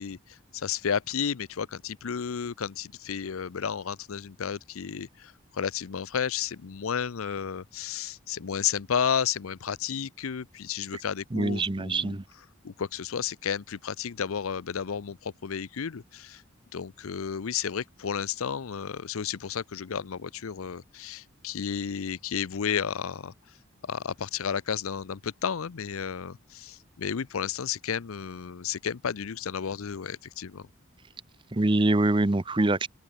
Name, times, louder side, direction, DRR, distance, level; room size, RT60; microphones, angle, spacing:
voice 1, 0.0-12.2 12.6-16.4 16.7-23.3 23.8-30.7, left 7 dB, 85° left, 0.6 m, -32 dB
voice 2, 11.3-12.2 31.5-32.9, right 2 dB, 25° right, 0.7 m, -24 dB
open air
head